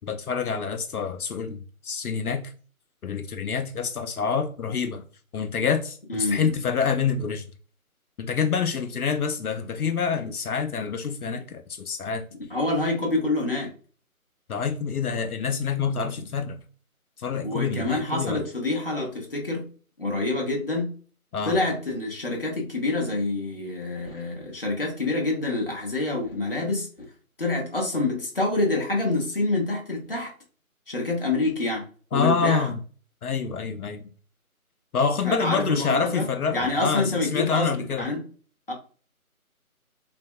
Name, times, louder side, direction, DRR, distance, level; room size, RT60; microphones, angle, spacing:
voice 1, 0.1-2.5 3.0-5.0 5.3-7.4 8.2-12.2 14.5-16.5 17.2-18.4 21.3-21.6 32.1-32.8 33.2-34.0 34.9-38.1, left 6 dB, 80° left, 0.5 m, -27 dB
voice 2, 6.1-6.6 12.5-13.7 17.4-19.7 20.0-20.9 21.4-26.9 27.4-30.3 30.9-31.8 32.1-32.7 35.2-37.7 38.0-38.2 38.7-38.8, left 2 dB, 40° left, 0.7 m, -27 dB
3.3 x 2.1 x 2.4 m
figure-of-eight pair, 160°, 43 cm